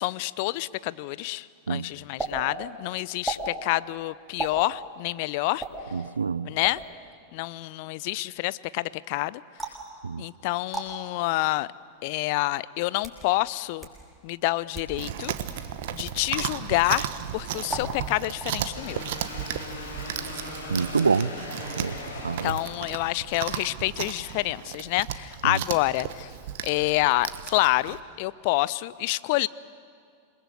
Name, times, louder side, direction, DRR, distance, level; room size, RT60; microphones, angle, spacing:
voice 1, 0.0-5.6 6.4-6.8 7.3-9.4 10.2-11.7 12.0-13.9 14.2-15.3 15.9-19.0 22.4-26.3 26.6-29.5, left 19 dB, 45° left, 19 dB, 0.6 m, -27 dB
sound 1, 2.2-2.3 3.2-3.4 4.4-4.6 5.6-5.7 6.6-6.9 9.6-9.9 10.7-10.9 11.8-11.9 12.8-13.2 13.8-13.9 14.6-14.9 15.4-15.5 16.0-16.2 17.7-18.1 18.4-18.8, right 3 dB, 10° right, 6.7 m, -34 dB
voice 2, 5.9-6.5 10.0-10.2 20.7-21.4 21.7-22.0 22.2-22.6 25.4-25.6, right 5 dB, 75° right, 19 dB, 0.6 m, -26 dB
Chewing mastication, 15.0-28.0, right 10 dB, 55° right, 1.3 m, -35 dB
sound 2, 18.7-23.3, left 2 dB, 65° left, 6.2 m, -39 dB
28.0 x 22.0 x 7.8 m, 2.2 s
figure-of-eight pair, 90°, 0 cm